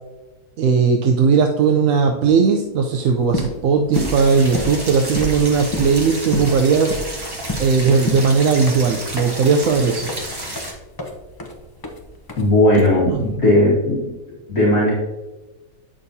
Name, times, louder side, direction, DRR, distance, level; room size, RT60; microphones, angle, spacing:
voice 1, 0.6-7.0 7.6-10.1 13.1-13.3, right 5 dB, 70° right, 3 dB, 1.0 m, -17 dB
sound 1, 3.1-13.3, left 1 dB, 25° left, 0.5 m, -30 dB
sound 2, 3.9-10.7, right 1 dB, 15° right, 1.2 m, -31 dB
voice 2, 12.4-14.1 14.5-14.9, left 1 dB, 60° left, -7 dB, 1.9 m, -16 dB
8.9 x 6.2 x 2.7 m, 1.1 s
omnidirectional pair, 1.6 m